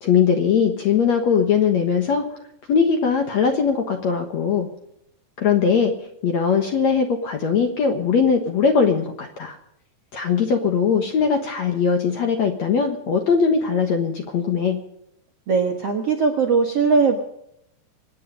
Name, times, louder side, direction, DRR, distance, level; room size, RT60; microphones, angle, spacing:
voice 1, 0.0-2.2 2.7-4.7 5.4-5.9 6.2-9.6 10.1-14.8, left 6 dB, 60° left, 4 dB, 2.0 m, -20 dB
voice 2, 15.5-17.2, right 5 dB, 60° right, 2 dB, 1.7 m, -19 dB
25.5 x 9.6 x 5.3 m, 0.78 s
omnidirectional pair, 4.7 m